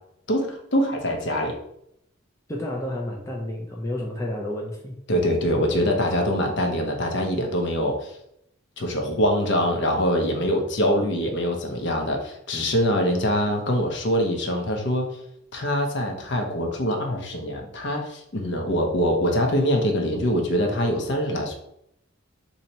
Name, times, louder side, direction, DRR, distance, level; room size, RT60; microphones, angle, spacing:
voice 1, 0.3-1.6 5.1-8.1 8.8-15.1 15.5-21.6, equal, 55° left, 2 dB, 0.6 m, -24 dB
voice 2, 2.5-4.9, left 1 dB, 15° left, -2 dB, 0.4 m, -30 dB
2.8 x 2.7 x 4.2 m, 0.77 s
head